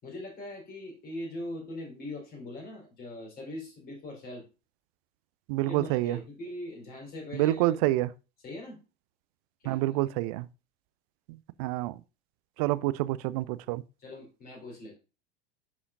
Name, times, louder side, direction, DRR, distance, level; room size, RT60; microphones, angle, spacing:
voice 1, 0.0-4.4 5.6-7.8 8.4-8.8 9.6-9.8 14.0-15.0, left 1 dB, 25° left, 4.2 m, -41 dB
voice 2, 5.5-6.2 7.3-8.1 9.7-10.5 11.6-11.9 12.6-13.8, right 17 dB, 35° right, 0.4 m, -27 dB
11.5 x 5.0 x 2.5 m
figure-of-eight pair, 85°, 34 cm